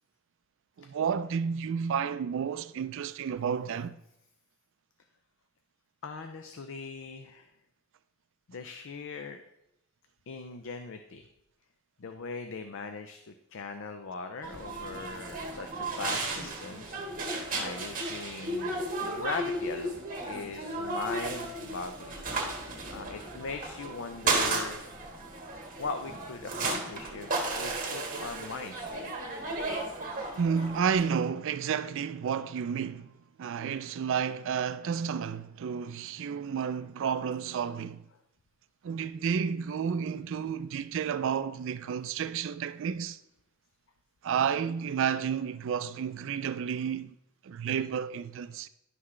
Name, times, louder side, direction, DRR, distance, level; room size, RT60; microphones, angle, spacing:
voice 1, 0.8-4.0 30.4-38.0 38.8-43.2 44.2-47.1 47.4-48.7, right 7 dB, 65° right, 0.4 m, -31 dB
voice 2, 6.0-7.5 8.5-9.4 10.3-11.2 12.0-17.0 17.5-22.2 22.9-24.8 25.8-29.9 30.2-30.7, left 4 dB, 65° left, 0.5 m, -40 dB
sound 1, 14.4-31.0, right 2 dB, 40° right, 1.4 m, -34 dB
11.0 x 5.9 x 3.2 m
head